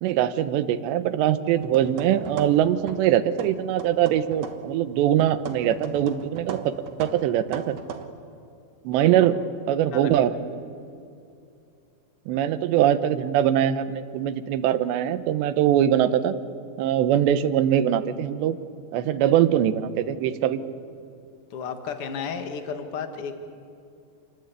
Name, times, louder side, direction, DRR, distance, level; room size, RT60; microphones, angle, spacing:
voice 1, 0.0-6.7 7.0-7.8 8.8-9.4 9.7-10.3 12.3-16.3 16.8-18.6 18.9-20.6, right 11 dB, 90° right, 12 dB, 3.2 m, -22 dB
sound 1, 1.5-3.1 3.4-4.8 5.2-8.1, right 7 dB, 65° right, 1.6 m, -38 dB
voice 2, 8.9-9.3 9.9-10.1 21.5-23.3, left 6 dB, 50° left, 6 dB, 1.7 m, -33 dB
28.0 x 21.0 x 8.3 m, 2.6 s
omnidirectional pair, 4.9 m